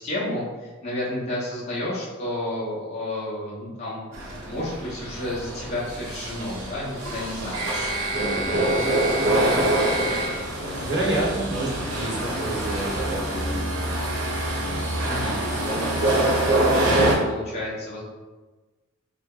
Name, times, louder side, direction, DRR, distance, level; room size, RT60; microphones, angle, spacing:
voice 1, 0.0-7.9 8.5-9.0 15.0-15.3 16.7-18.0, left 1 dB, 30° left, -8 dB, 0.9 m, -31 dB
sound 1, 4.1-17.2, right 1 dB, 90° right, 0.8 m, -25 dB
voice 2, 8.1-8.8 10.2-13.8 14.5-15.6, right 1 dB, 55° right, -6 dB, 0.9 m, -30 dB
3.3 x 2.1 x 3.7 m, 1.2 s
head